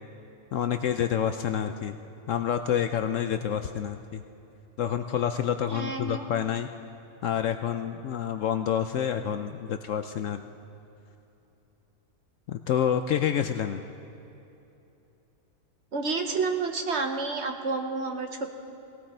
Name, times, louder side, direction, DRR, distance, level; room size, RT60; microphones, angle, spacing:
voice 1, 0.5-2.0 2.3-4.2 4.8-6.7 7.2-10.4 12.5-13.8, left 9 dB, 65° left, 8 dB, 0.8 m, -28 dB
voice 2, 5.7-6.2 15.9-18.5, right 4 dB, 50° right, 4 dB, 1.2 m, -30 dB
18.5 x 18.0 x 4.3 m, 2.9 s
omnidirectional pair, 1.6 m